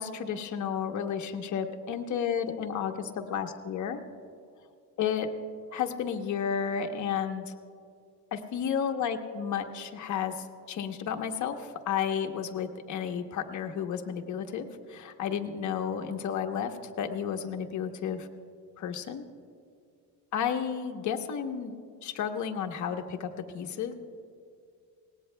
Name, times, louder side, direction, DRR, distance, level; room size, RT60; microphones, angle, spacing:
voice 1, 0.0-4.0 5.0-5.3 5.7-7.5 8.3-16.7 17.0-18.3 18.8-19.2 20.3-21.7 22.0-23.3 23.5-23.9, left 8 dB, 45° left, 5 dB, 1.0 m, -32 dB
24.0 x 19.0 x 2.2 m, 2.3 s
cardioid pair, 160°, 41 cm